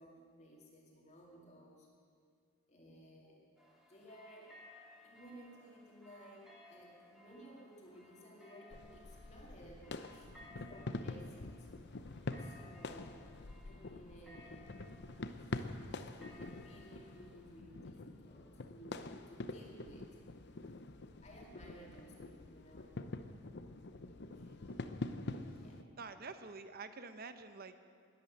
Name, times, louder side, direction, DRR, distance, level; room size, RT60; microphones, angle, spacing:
voice 1, 0.0-1.9 2.7-3.4 3.9-4.6 5.0-10.3 10.6-11.7 12.3-13.2 13.6-15.0 15.4-20.2 21.2-23.1 24.3-24.5 25.4-25.9, equal, 35° left, -2 dB, 2.4 m, -57 dB
sound 1, 3.6-17.6, left 1 dB, ahead, 2.4 m, -61 dB
sound 2, 8.7-25.8, left 2 dB, 55° left, 0.7 m, -46 dB
voice 2, 24.4-24.9 26.0-27.8, right 4 dB, 45° right, 10 dB, 0.8 m, -49 dB
20.5 x 8.7 x 7.6 m, 2.1 s
head